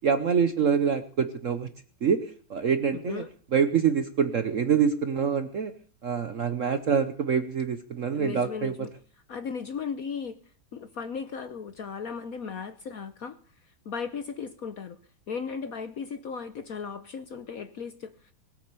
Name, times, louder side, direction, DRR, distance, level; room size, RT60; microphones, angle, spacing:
voice 1, 0.0-1.7 2.0-3.2 3.5-5.7 6.0-8.9, right 7 dB, 55° right, 10 dB, 0.9 m, -25 dB
voice 2, 2.9-3.3 8.1-8.9 9.3-10.4 10.7-13.4 13.8-15.0 15.3-18.3, left 6 dB, 60° left, 11 dB, 1.0 m, -36 dB
19.5 x 8.8 x 6.8 m, 0.43 s
omnidirectional pair, 2.3 m